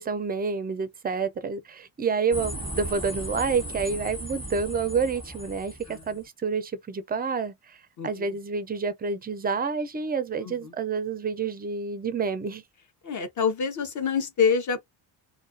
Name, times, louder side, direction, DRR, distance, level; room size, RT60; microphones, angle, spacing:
voice 1, 0.0-7.8 8.0-12.6, right 5 dB, 20° right, 0.4 m, -28 dB
sound 1, 2.3-6.2, right 1 dB, 10° left, 1.1 m, -36 dB
voice 2, 8.0-8.4 10.4-10.7 13.0-14.8, left 6 dB, 35° left, 0.7 m, -26 dB
2.4 x 2.3 x 2.4 m
cardioid pair, 95°, 49 cm